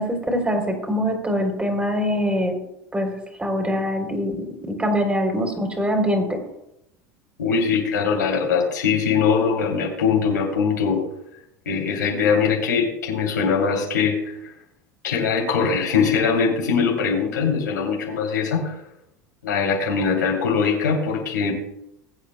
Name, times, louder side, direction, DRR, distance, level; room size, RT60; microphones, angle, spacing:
voice 1, 0.0-2.6 2.9-3.1 3.4-6.4, equal, 15° right, 2 dB, 3.3 m, -23 dB
voice 2, 7.4-11.0 11.6-14.3 15.0-18.8 19.4-21.5, left 6 dB, 85° left, -1 dB, 3.0 m, -21 dB
20.5 x 8.6 x 2.2 m, 0.83 s
hypercardioid pair, 80°, 9 cm